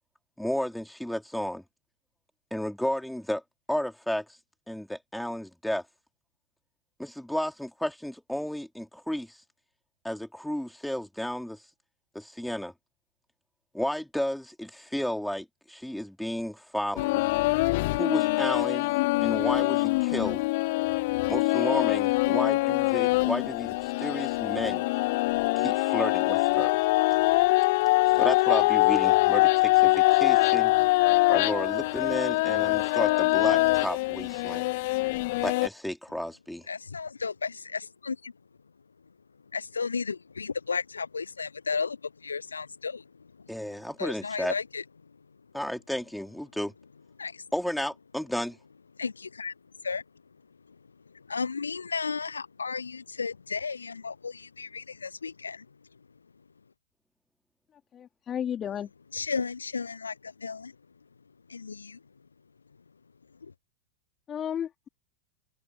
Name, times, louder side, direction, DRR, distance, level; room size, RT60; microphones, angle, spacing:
voice 1, 0.4-1.6 2.5-3.4 3.7-4.2 4.7-5.8 7.0-9.3 10.0-11.6 12.1-12.7 13.7-17.2 18.0-20.5 21.3-24.8 25.6-26.8 28.1-30.7 31.3-34.7 35.4-36.7 43.5-44.5 45.5-46.7 47.5-48.6, left 1 dB, ahead, 4.6 m, -32 dB
sound 1, 17.0-35.7, left 22 dB, 50° left, 0.4 m, -24 dB
voice 2, 36.7-38.3 39.5-43.5 44.0-45.1 47.2-47.4 49.0-49.5 49.8-50.0 50.7-50.8 51.1-55.7 59.1-60.7 61.5-62.0 63.4-63.5, left 5 dB, 75° left, 1.1 m, -34 dB
voice 3, 57.9-58.9 64.3-64.9, left 9 dB, 25° left, 4.0 m, -33 dB
open air
figure-of-eight pair, 90°, 0 cm